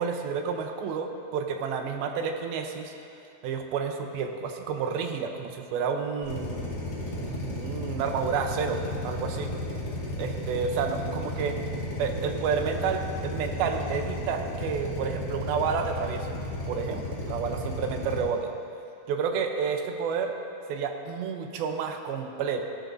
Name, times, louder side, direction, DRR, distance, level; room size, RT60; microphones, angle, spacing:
voice 1, 0.0-2.9 3.4-6.6 7.4-8.8 9.0-9.5 10.2-11.6 12.0-16.4 16.7-18.5 19.1-20.3 20.7-22.6, right 6 dB, 75° right, 4 dB, 2.4 m, -30 dB
Drill, 6.2-18.2, left 1 dB, 30° left, 2.1 m, -33 dB
15.5 x 13.0 x 2.6 m, 2.6 s
omnidirectional pair, 4.7 m